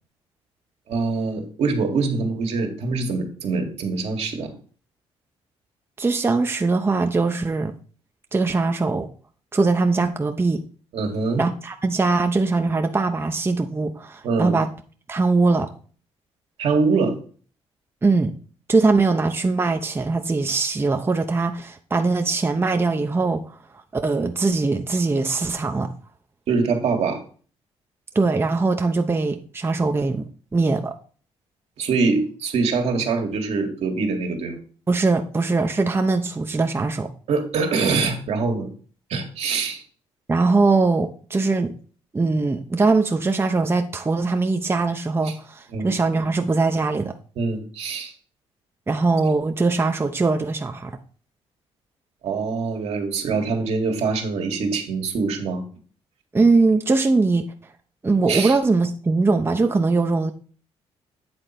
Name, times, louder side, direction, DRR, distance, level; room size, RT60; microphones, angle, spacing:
voice 1, 0.9-4.5 10.9-11.4 14.2-14.6 16.6-17.1 26.5-27.2 31.8-34.6 37.3-38.7 39.1-39.8 45.2-45.3 45.7-45.9 47.4-48.1 52.2-55.6 58.3-58.6, right 4 dB, 70° right, 1.9 m, -24 dB
voice 2, 6.0-7.8 8.3-9.1 9.5-10.6 11.4-14.7 15.1-15.7 18.0-18.3 18.7-23.4 23.9-25.9 28.1-30.9 34.9-37.1 40.3-41.7 42.1-47.1 48.9-51.0 56.3-57.5 58.0-60.3, right 3 dB, 20° right, 0.8 m, -21 dB
8.8 x 3.9 x 5.8 m
cardioid pair, 85°, 11 cm